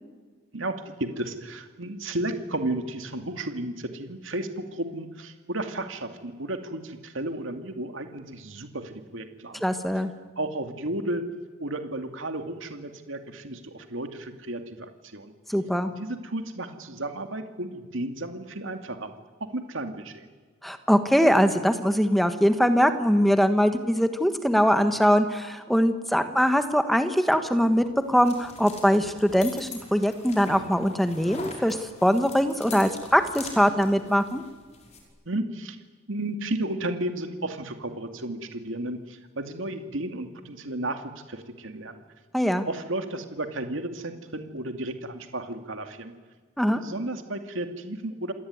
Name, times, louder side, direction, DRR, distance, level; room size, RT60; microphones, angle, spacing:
voice 1, 0.5-9.7 10.4-11.2 11.6-15.3 16.0-19.1 19.4-20.3 35.3-35.8 36.1-42.0 42.6-46.1 46.7-48.3, right 1 dB, 70° right, 6 dB, 2.4 m, -33 dB
voice 2, 9.6-10.1 15.5-15.9 20.6-34.4 42.3-42.6 46.6-46.8, equal, ahead, 8 dB, 1.5 m, -22 dB
sound 1, 27.6-35.0, left 4 dB, 30° left, 5.5 m, -44 dB
27.5 x 18.5 x 9.6 m, 1.5 s
head